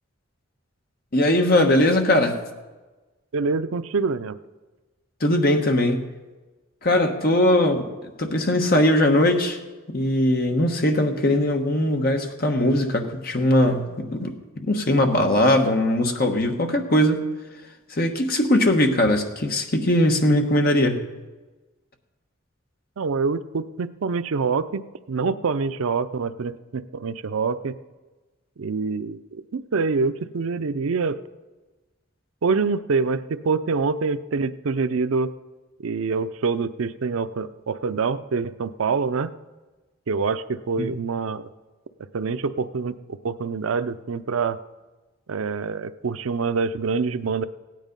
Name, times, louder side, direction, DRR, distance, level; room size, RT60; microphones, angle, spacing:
voice 1, 1.1-2.4 5.2-6.0 6.8-9.6 9.9-14.3 14.7-17.3 17.9-21.0 40.8-40.9, left 1 dB, 45° left, 4 dB, 1.2 m, -20 dB
voice 2, 3.3-4.4 23.0-27.8 28.6-31.2 32.4-35.3 35.8-39.3 40.1-41.5 42.1-43.0 43.2-44.6 45.3-47.4, right 4 dB, 80° right, 13 dB, 0.5 m, -25 dB
16.5 x 9.4 x 5.3 m, 1.2 s
head